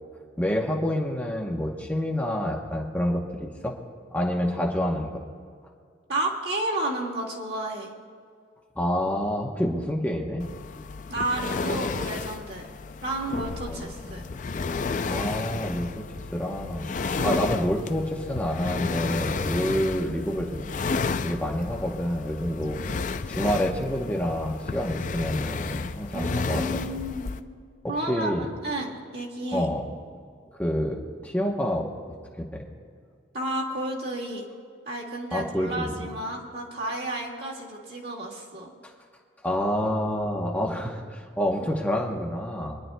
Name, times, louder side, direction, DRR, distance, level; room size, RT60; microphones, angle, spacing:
voice 1, 0.4-3.8 4.1-5.2 8.8-10.5 13.7-13.9 15.1-16.0 16.3-20.7 21.2-23.0 23.3-26.8 27.8-28.5 29.5-29.9 30.5-31.9 32.4-32.7 35.3-36.1 39.4-42.8, equal, 10° left, -1 dB, 0.9 m, -28 dB
voice 2, 6.1-7.9 11.1-12.7 13.0-14.3 17.2-17.5 26.1-27.3 27.9-29.7 33.3-34.4 34.9-38.7, right 1 dB, 55° right, -3 dB, 2.0 m, -31 dB
sound 1, 10.4-27.4, left 4 dB, 40° left, 0.4 m, -32 dB
26.0 x 10.5 x 2.2 m, 2.2 s
head